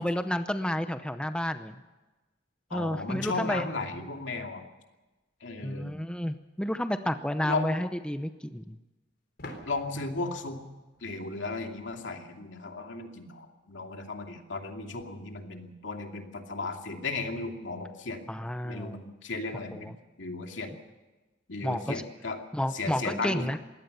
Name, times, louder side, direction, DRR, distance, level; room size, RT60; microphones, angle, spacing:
voice 1, 0.0-1.8 2.7-3.7 5.6-8.8 18.3-19.1 19.7-19.9 21.6-22.0 22.5-23.6, left 1 dB, 5° left, 9 dB, 0.7 m, -31 dB
voice 2, 2.7-4.6 5.4-6.0 7.4-7.8 9.7-10.6 11.0-18.2 18.6-19.9 20.2-20.7 21.5-22.4 22.7-23.5, left 3 dB, 75° left, 4 dB, 2.6 m, -35 dB
sound 1, 6.4-6.5 9.4-12.0, left 1 dB, 55° left, 3.9 m, -48 dB
22.0 x 17.0 x 6.8 m, 1.1 s
head